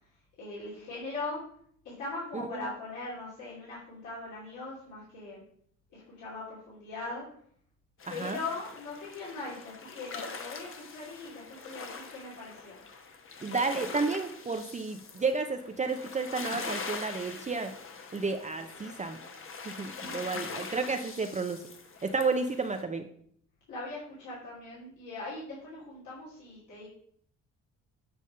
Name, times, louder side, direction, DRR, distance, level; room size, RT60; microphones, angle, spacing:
voice 1, 0.4-1.4 1.8-5.4 5.9-7.3 8.1-12.8 23.7-26.9, left 3 dB, 85° left, -9 dB, 2.9 m, -40 dB
sound 1, 8.0-22.8, left 4 dB, 45° left, 1.1 m, -43 dB
voice 2, 8.1-8.4 13.4-17.7 18.1-19.2 19.7-21.6 22.0-23.1, right 4 dB, 25° right, 6 dB, 0.6 m, -31 dB
8.5 x 3.5 x 5.4 m, 0.63 s
cardioid pair, 90°, 30 cm